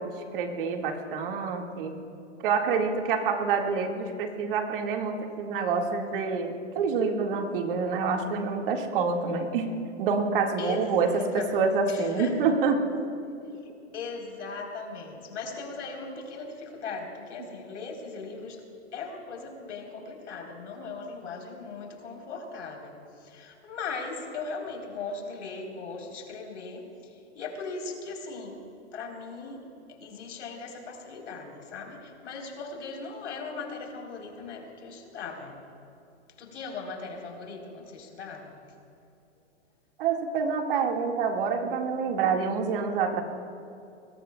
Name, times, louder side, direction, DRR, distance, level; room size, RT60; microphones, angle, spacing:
voice 1, 0.0-1.9 2.4-9.7 10.0-12.9 13.4-13.6 40.0-43.2, right 5 dB, 50° right, 2 dB, 2.0 m, -27 dB
voice 2, 10.6-11.6 11.9-12.4 13.9-18.6 18.9-28.6 28.9-35.6 36.4-38.6, left 4 dB, 80° left, 1 dB, 4.0 m, -39 dB
25.0 x 21.5 x 2.3 m, 2.6 s
hypercardioid pair, 155°, 35 cm